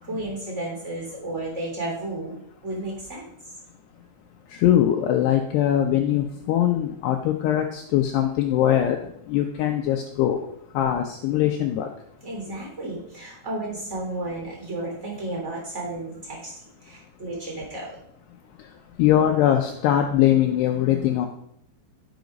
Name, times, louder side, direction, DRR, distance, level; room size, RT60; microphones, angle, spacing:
voice 1, 0.0-3.2 12.2-16.5 16.8-18.0, right 2 dB, 15° right, -2 dB, 3.2 m, -33 dB
voice 2, 4.5-9.0 9.3-10.4 10.7-11.9 19.0-21.3, left 11 dB, 80° left, 3 dB, 2.5 m, -21 dB
11.5 x 6.0 x 5.2 m, 0.71 s
omnidirectional pair, 5.5 m